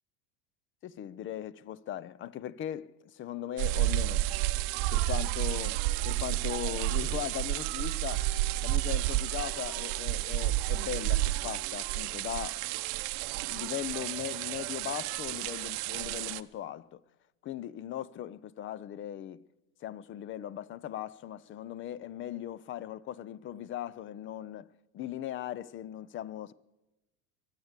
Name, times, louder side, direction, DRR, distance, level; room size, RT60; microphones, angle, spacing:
voice 1, 0.8-4.3 4.9-5.8 6.0-8.3 8.6-12.6 13.5-17.0 17.4-19.4 19.8-24.7 24.9-26.5, left 11 dB, 30° left, 0.4 m, -39 dB
sound 1, 3.6-16.4, right 17 dB, 55° right, 0.8 m, -31 dB
22.0 x 8.2 x 8.1 m
supercardioid pair, 115°, 44 cm